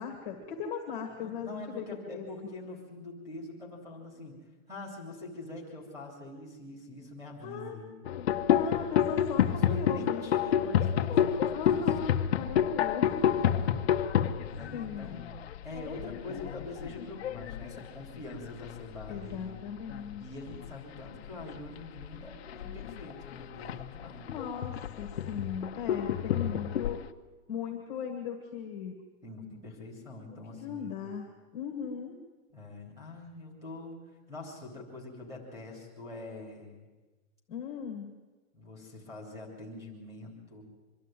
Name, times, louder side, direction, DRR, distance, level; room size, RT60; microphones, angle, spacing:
voice 1, 0.0-2.2 7.4-7.8 8.5-10.3 11.5-13.4 14.7-15.2 19.1-20.2 24.2-27.0 27.5-29.0 30.6-31.2 31.5-32.1 37.5-38.1, left 6 dB, 15° left, 0 dB, 1.7 m, -38 dB
voice 2, 1.2-4.4 4.7-7.9 9.5-11.8 13.3-14.0 14.5-15.3 15.6-19.6 20.2-24.3 29.2-31.1 32.5-34.0 34.3-36.9 38.5-40.6, left 2 dB, 5° right, -4 dB, 3.3 m, -44 dB
sound 1, 8.0-19.4 19.7-20.2 20.5-27.1, left 9 dB, 45° left, 0.8 m, -30 dB
24.5 x 12.0 x 9.2 m, 1.2 s
hypercardioid pair, 175°, 43 cm